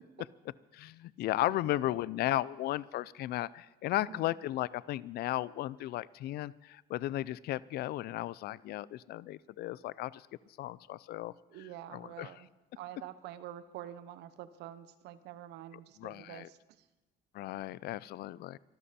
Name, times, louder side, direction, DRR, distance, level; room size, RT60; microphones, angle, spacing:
voice 1, 0.7-10.3 10.6-11.3 11.9-12.3 16.0-16.5 17.3-18.6, left 15 dB, 70° left, 21 dB, 0.5 m, -35 dB
voice 2, 1.4-2.0 3.9-4.3 11.5-12.5 12.8-16.9, right 12 dB, 85° right, 13 dB, 1.0 m, -47 dB
25.0 x 12.5 x 4.3 m, 1.1 s
cardioid pair, 110°, 17 cm